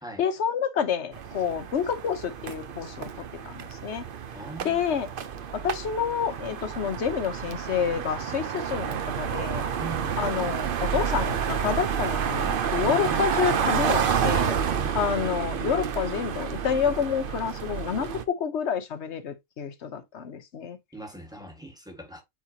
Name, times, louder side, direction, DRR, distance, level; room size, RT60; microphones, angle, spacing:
voice 1, 0.2-4.0 4.6-5.1 5.5-9.6 10.2-14.6 14.9-20.8, left 7 dB, 55° left, 1.2 m, -28 dB
sound 1, 1.1-18.2, right 7 dB, 50° right, 0.7 m, -29 dB
voice 2, 4.3-4.8 9.8-10.2 14.7-15.0 20.9-22.2, right 1 dB, 5° right, 1.5 m, -41 dB
8.3 x 4.3 x 2.8 m
omnidirectional pair, 1.4 m